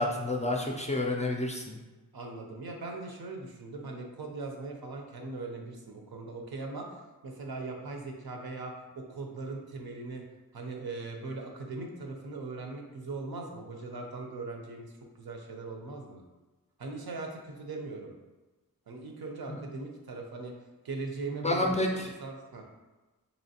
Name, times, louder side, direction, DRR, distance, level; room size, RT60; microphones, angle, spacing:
voice 1, 0.0-1.8 19.5-19.6 21.3-22.1, left 1 dB, 20° left, 0 dB, 0.4 m, -29 dB
voice 2, 2.1-10.2 10.5-14.9 15.2-16.2 16.8-18.1 18.9-20.5 20.8-21.7 22.2-22.7, right 3 dB, 75° right, 2 dB, 0.7 m, -40 dB
4.2 x 3.0 x 2.8 m, 1.2 s
wide cardioid pair, 120°, 37 cm